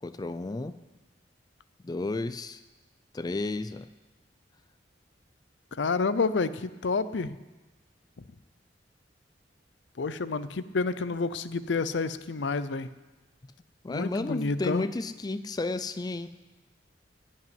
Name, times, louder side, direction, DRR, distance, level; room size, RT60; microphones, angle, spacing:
voice 1, 0.0-0.7 1.8-2.6 3.1-3.9 13.8-16.3, left 2 dB, 20° left, 11 dB, 0.4 m, -32 dB
voice 2, 5.7-7.4 10.0-12.9 13.9-14.9, left 4 dB, 75° left, 14 dB, 0.6 m, -29 dB
16.0 x 5.5 x 9.5 m, 1.1 s
head